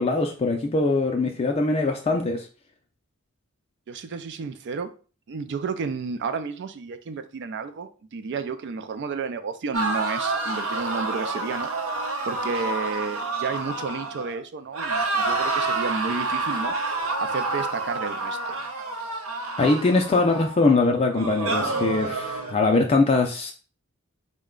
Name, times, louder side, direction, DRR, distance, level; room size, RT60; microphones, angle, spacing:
voice 1, 0.0-2.5 19.6-23.5, left 3 dB, 30° left, 2 dB, 0.4 m, -22 dB
voice 2, 3.9-4.9 5.3-11.7 12.3-18.6, right 5 dB, 55° right, 10 dB, 0.4 m, -32 dB
sound 1, 9.7-14.4 14.7-20.6 21.1-22.5, right 3 dB, 75° right, 0.7 m, -28 dB
3.9 x 2.2 x 3.6 m, 0.38 s
head